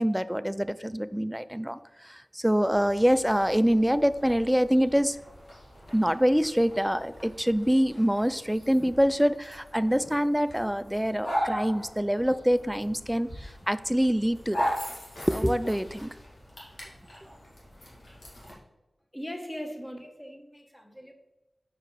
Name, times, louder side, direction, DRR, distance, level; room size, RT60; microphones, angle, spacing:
voice 1, 0.0-5.2 5.9-14.8 15.3-16.1, equal, 5° right, 14 dB, 0.3 m, -25 dB
sound 1, 2.6-18.5, equal, 65° left, 2.1 m, -39 dB
voice 2, 19.1-21.1, equal, 15° left, 3 dB, 1.1 m, -39 dB
6.1 x 4.7 x 4.7 m, 1.0 s
wide cardioid pair, 80°, 0 cm